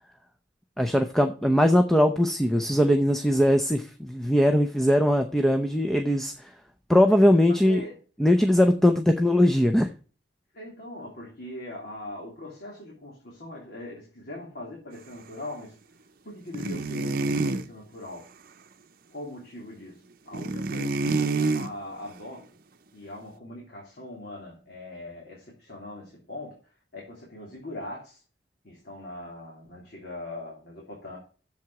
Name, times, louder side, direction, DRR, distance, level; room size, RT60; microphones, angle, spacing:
voice 1, 0.8-6.3 6.9-7.8 8.2-9.9, left 1 dB, ahead, 6 dB, 0.6 m, -20 dB
voice 2, 7.5-8.0 10.5-15.8 16.2-18.3 19.1-22.5 22.9-26.6 26.9-28.2 28.6-31.2, left 1 dB, 60° left, -3 dB, 3.0 m, -41 dB
sound 1, 16.5-17.7 20.3-21.7, right 3 dB, 55° right, 0.8 m, -27 dB
7.8 x 7.2 x 5.8 m, 0.39 s
head